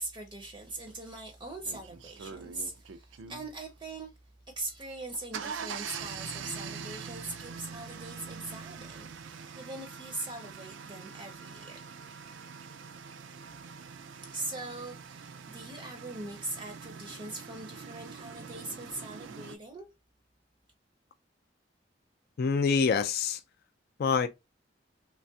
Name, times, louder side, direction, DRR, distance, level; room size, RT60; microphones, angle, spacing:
voice 1, 0.0-4.1 4.6-9.1 9.6-11.8 14.2-19.9, right 2 dB, 25° right, 0.5 m, -41 dB
sound 1, 1.0-1.1 1.6-3.5 4.9-19.6, right 6 dB, 90° right, 0.4 m, -44 dB
voice 2, 22.4-23.4 24.0-24.3, left 5 dB, 55° left, 0.4 m, -26 dB
3.2 x 2.3 x 2.6 m
head